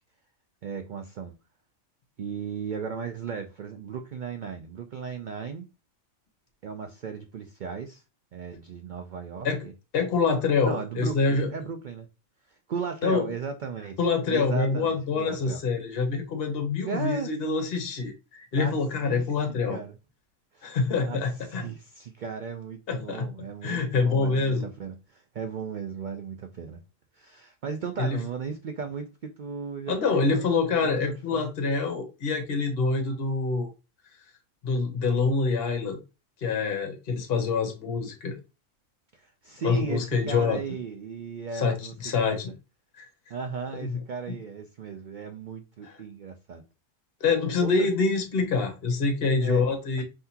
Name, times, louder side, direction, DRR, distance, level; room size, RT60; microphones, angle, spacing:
voice 1, 0.6-1.3 2.2-5.7 6.6-8.0 8.3-9.7 10.6-12.1 12.5-14.0 14.3-15.6 16.8-17.3 18.6-18.7 19.0-19.3 19.7-19.9 20.5-20.7 21.1-26.8 27.1-31.5 39.1-42.4 43.3-46.6 47.6-47.9 49.4-49.7 50.0-50.1, right 5 dB, 85° right, 0.4 m, -36 dB
voice 2, 9.9-11.5 13.0-13.3 14.0-19.8 20.6-21.7 22.9-23.3 23.6-24.7 28.0-28.2 29.9-33.7 34.6-36.0 36.4-38.4 39.6-40.6 41.5-41.8 42.0-42.5 43.0-43.1 43.8-44.0 44.3-44.4 45.8-46.0 47.2-50.0, left 4 dB, 50° left, 1.1 m, -26 dB
5.6 x 2.7 x 2.8 m
omnidirectional pair, 1.4 m